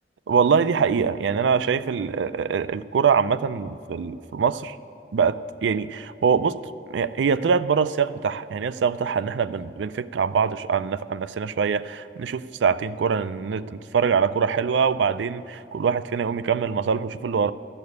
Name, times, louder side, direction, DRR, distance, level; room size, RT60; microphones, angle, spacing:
voice 1, 0.3-4.8 5.1-6.6 6.9-17.5, right 6 dB, 80° right, 15 dB, 0.4 m, -23 dB
12.0 x 6.8 x 9.5 m, 2.9 s
head